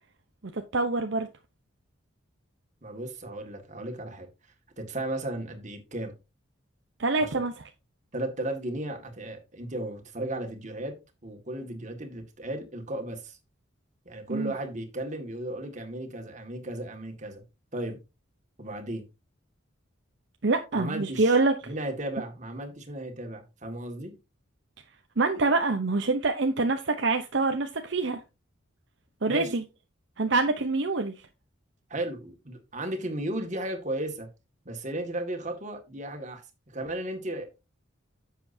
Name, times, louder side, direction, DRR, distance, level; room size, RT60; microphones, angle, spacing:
voice 1, 0.5-1.3 7.0-7.5 14.3-14.5 20.4-21.5 25.2-28.2 29.2-29.6 30.2-31.1, right 3 dB, 60° right, 0.8 m, -25 dB
voice 2, 2.8-4.3 4.8-6.1 7.2-7.4 8.1-11.0 11.2-13.4 14.1-17.4 17.7-18.0 18.6-19.0 20.7-21.4 21.7-24.1 29.3-29.5 31.9-34.3 34.7-37.5, right 1 dB, 35° right, 2.0 m, -35 dB
10.5 x 7.7 x 2.7 m
head